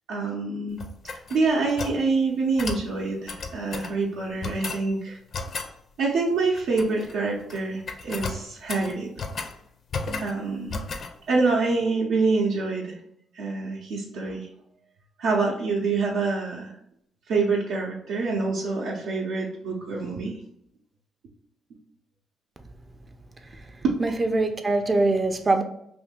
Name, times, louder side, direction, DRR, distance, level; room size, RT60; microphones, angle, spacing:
voice 1, 0.1-0.8 1.0-5.2 6.0-9.1 10.2-10.8 11.3-12.9 13.4-14.5 15.2-16.7 17.3-20.3 23.8-24.0, right 3 dB, 80° right, 0.6 m, -26 dB
sound 1, 0.8-2.0 2.6-2.9 3.3-3.9 4.4-4.9 5.3-5.7 6.5-7.1 7.4-7.6 7.9-9.6 9.9-10.4 10.7-11.1, left 4 dB, 50° left, 0.4 m, -34 dB
voice 2, 24.0-25.6, right 2 dB, 30° right, 0.4 m, -23 dB
2.6 x 2.6 x 3.6 m
cardioid pair, 90°, 0 cm